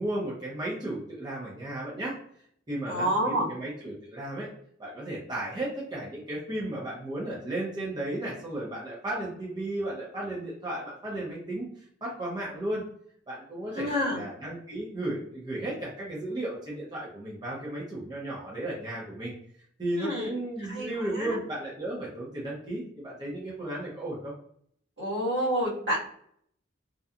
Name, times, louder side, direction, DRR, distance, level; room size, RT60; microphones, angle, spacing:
voice 1, 0.0-2.1 2.7-4.5 4.8-11.6 12.0-12.8 13.3-19.3 19.8-24.3, right 1 dB, 20° right, -6 dB, 0.7 m, -34 dB
voice 2, 2.9-3.5 13.7-14.2 19.9-20.3 20.7-21.4 25.0-26.0, equal, 65° right, -7 dB, 1.5 m, -28 dB
2.7 x 2.2 x 2.4 m, 0.65 s
head